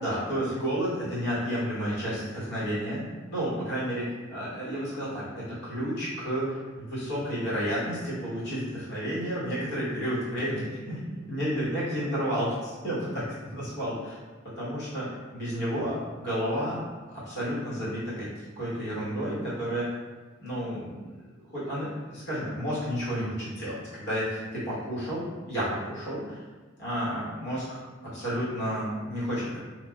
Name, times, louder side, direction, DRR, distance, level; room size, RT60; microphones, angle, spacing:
voice 1, 0.0-13.2 13.5-14.1 14.6-16.8 17.3-18.3 18.6-19.8 20.4-20.9 21.5-26.4 26.8-27.8 28.1-29.6, equal, 55° left, -10 dB, 1.2 m, -31 dB
3.2 x 2.3 x 2.3 m, 1.3 s
head